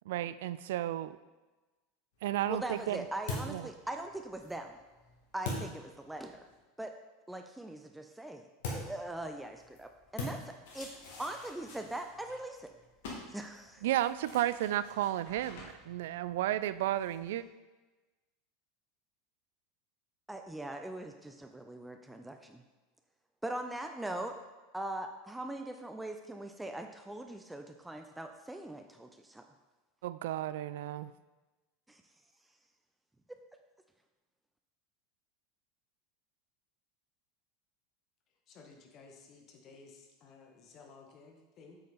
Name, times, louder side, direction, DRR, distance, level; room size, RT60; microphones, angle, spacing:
voice 1, 0.1-1.2 2.2-3.0 3.5-3.7 13.8-17.4 30.0-31.1, right 13 dB, 65° right, 15 dB, 0.4 m, -33 dB
sound 1, 2.1-6.5 8.6-17.4, left 2 dB, 60° left, 2.5 m, -45 dB
voice 2, 2.5-4.8 5.3-6.4 6.8-6.9 7.3-8.4 8.7-10.9 11.2-12.7 13.3-13.8 20.3-22.6 23.4-24.4 24.7-29.4 31.9-32.0, right 1 dB, 5° right, 6 dB, 0.7 m, -41 dB
voice 3, 38.5-41.8, left 4 dB, 40° left, 2 dB, 1.7 m, -55 dB
8.2 x 8.0 x 4.3 m, 1.2 s
figure-of-eight pair, 80°, 0 cm